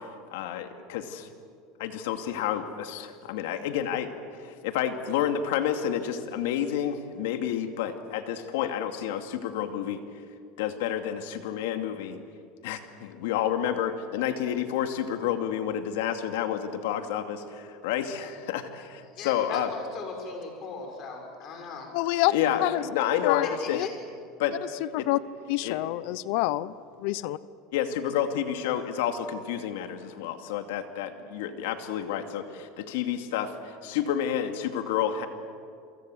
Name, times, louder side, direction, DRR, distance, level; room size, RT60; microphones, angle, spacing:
voice 1, 0.3-1.3 1.8-4.1 4.4-10.0 10.6-12.2 12.6-19.7 22.3-23.8 24.4-24.6 25.0-25.1 25.6-25.8 27.7-35.3, left 9 dB, 85° left, 6 dB, 2.4 m, -29 dB
voice 2, 19.1-21.9 23.4-23.9, left 4 dB, 40° left, 2 dB, 6.5 m, -39 dB
voice 3, 21.9-22.3 22.6-22.8 23.2-23.9 24.9-25.2 25.5-26.7 27.0-27.4, left 17 dB, 65° left, 18 dB, 0.7 m, -27 dB
29.0 x 24.0 x 7.9 m, 2.4 s
supercardioid pair, 155°, 0 cm